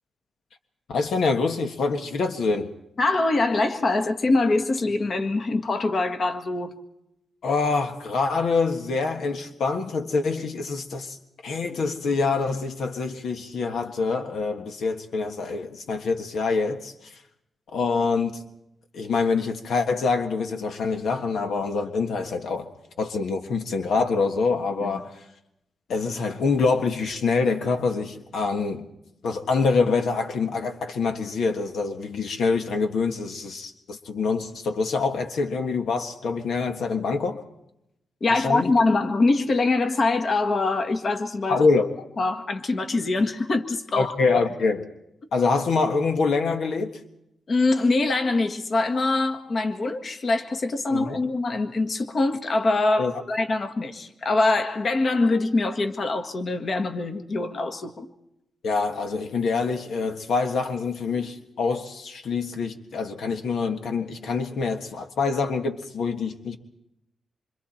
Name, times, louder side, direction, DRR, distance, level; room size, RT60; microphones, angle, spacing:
voice 1, 0.9-2.7 7.4-11.2 11.4-17.2 17.7-18.4 18.9-22.7 23.0-25.2 25.9-28.8 29.2-37.4 38.3-38.7 41.5-41.9 43.9-44.8 45.3-47.0 50.9-51.2 53.0-53.1 58.6-66.6, left 4 dB, 80° left, 1.6 m, -25 dB
voice 2, 3.0-6.7 38.2-41.6 42.2-44.4 47.5-58.1, left 3 dB, 50° left, 1.7 m, -24 dB
27.0 x 25.5 x 4.4 m
cardioid pair, 100°, 0 cm